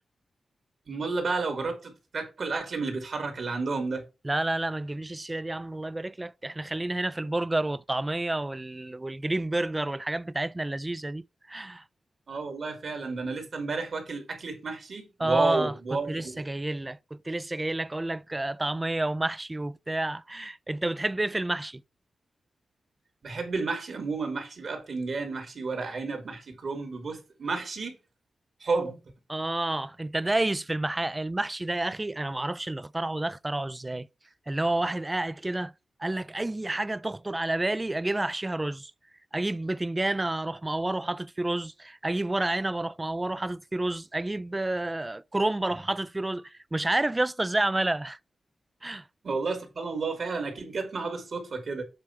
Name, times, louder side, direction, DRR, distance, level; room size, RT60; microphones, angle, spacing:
voice 1, 0.9-4.1 12.3-16.4 23.2-28.0 28.6-29.0 49.2-51.8, right 4 dB, 65° right, 2.5 m, -31 dB
voice 2, 4.2-11.8 15.2-21.8 29.3-34.1 34.5-35.7 36.0-38.9 39.3-48.2 48.8-49.0, right 2 dB, 20° right, 0.4 m, -30 dB
7.8 x 3.4 x 5.6 m
cardioid pair, 70°, 0 cm